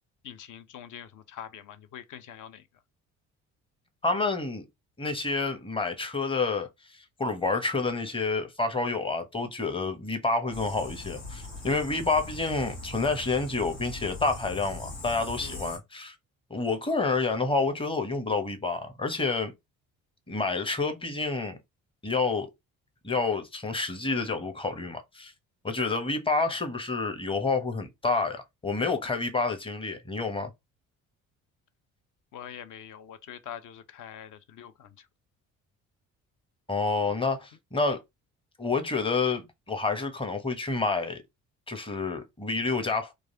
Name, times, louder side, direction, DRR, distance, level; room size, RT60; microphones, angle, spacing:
voice 1, 0.2-2.7 15.4-15.7 32.3-35.1 37.1-37.2, left 9 dB, 50° left, 0.7 m, -44 dB
voice 2, 4.0-4.6 5.0-16.1 16.5-19.5 20.3-21.6 22.0-22.5 23.0-25.3 25.6-30.5 36.7-38.0 38.6-41.2 41.7-43.1, left 3 dB, 15° left, 0.9 m, -29 dB
sound 1, 10.5-15.8, left 2 dB, 80° left, 1.4 m, -40 dB
3.1 x 2.4 x 2.6 m
hypercardioid pair, 50°, 41 cm